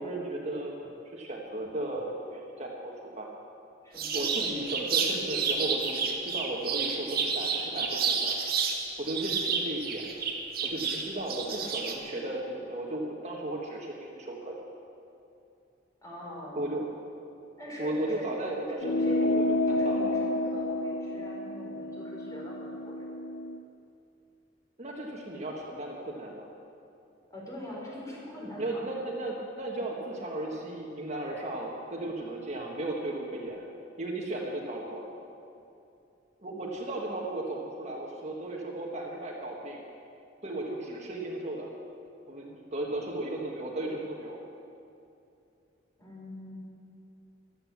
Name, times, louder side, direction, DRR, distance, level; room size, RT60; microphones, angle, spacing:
voice 1, 0.0-3.3 4.1-8.4 9.0-10.1 10.6-14.5 16.5-16.8 17.8-20.1 24.8-26.5 28.6-33.7 34.0-35.1 36.4-39.8 40.4-41.7 42.3-44.4, right 1 dB, 35° right, -1 dB, 1.7 m, -35 dB
voice 2, 3.8-5.0 16.0-16.7 17.6-23.2 27.3-28.9 46.0-46.6, left 1 dB, 20° left, -4 dB, 4.9 m, -42 dB
sound 1, 4.0-8.8 9.1-11.9, right 5 dB, 55° right, 1.9 m, -30 dB
sound 2, 18.8-23.6, left 1 dB, 70° left, 0.7 m, -30 dB
15.0 x 13.0 x 7.4 m, 2.7 s
head